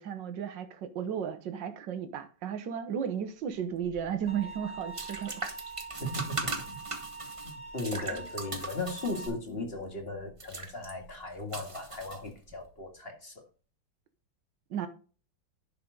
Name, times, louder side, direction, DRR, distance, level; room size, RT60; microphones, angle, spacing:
voice 1, 0.0-5.4 8.1-8.3 14.7-14.9, right 8 dB, 75° right, 1.7 m, -34 dB
sound 1, 3.8-12.7, right 3 dB, 20° right, 1.0 m, -40 dB
sound 2, 4.3-9.3, right 3 dB, 10° left, 2.6 m, -44 dB
voice 2, 6.0-6.8 7.7-13.4, left 2 dB, 30° left, 2.1 m, -37 dB
11.0 x 6.7 x 3.9 m
omnidirectional pair, 2.0 m